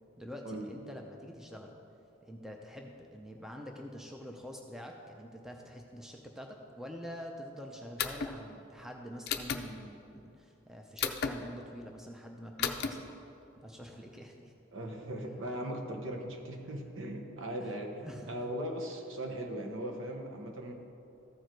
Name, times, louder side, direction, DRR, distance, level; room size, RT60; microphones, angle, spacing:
voice 1, 0.2-1.7 2.2-13.1 13.6-14.5 17.6-17.8 18.0-18.3, equal, ahead, 2 dB, 0.5 m, -46 dB
sound 1, 8.0-8.3 9.3-9.6 11.0-11.3 12.6-12.9, left 7 dB, 50° left, 0.5 m, -32 dB
voice 2, 14.7-20.7, right 1 dB, 70° right, 2 dB, 1.0 m, -39 dB
14.0 x 4.7 x 4.6 m, 2.7 s
head